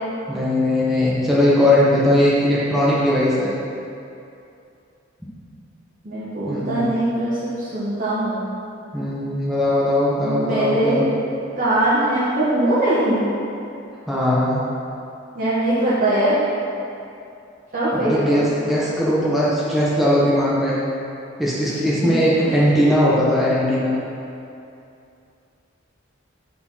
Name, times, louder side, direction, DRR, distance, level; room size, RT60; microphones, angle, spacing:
voice 1, 0.3-3.5 6.5-7.0 8.9-11.1 14.1-14.6 17.9-20.8 21.4-24.0, left 1 dB, ahead, -8 dB, 1.2 m, -19 dB
voice 2, 6.0-8.4 10.2-11.0 11.6-13.2 15.3-16.4 17.7-18.4 21.9-22.2, right 1 dB, 45° right, -10 dB, 1.6 m, -21 dB
8.6 x 4.4 x 5.8 m, 2.6 s
head